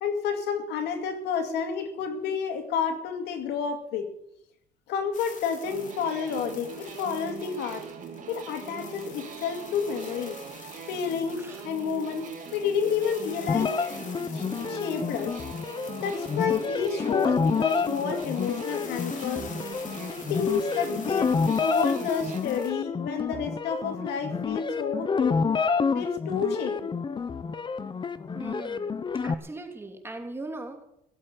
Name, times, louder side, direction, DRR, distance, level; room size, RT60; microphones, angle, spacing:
voice 1, 0.0-4.1 4.9-7.8 8.3-10.4 10.9-13.8 14.3-15.4 16.0-19.5 20.3-25.4 25.9-26.9, left 6 dB, 85° left, 7 dB, 2.4 m, -30 dB
sound 1, 5.1-22.7, left 6 dB, 50° left, 3.1 m, -48 dB
sound 2, 5.6-22.4, right 6 dB, 50° right, 2.4 m, -42 dB
sound 3, 13.5-29.3, left 5 dB, 25° left, 0.8 m, -29 dB
voice 2, 28.3-28.9 29.2-30.8, right 2 dB, 15° right, 4 dB, 2.9 m, -39 dB
16.5 x 8.4 x 9.2 m, 0.76 s
cardioid pair, 110°, 17 cm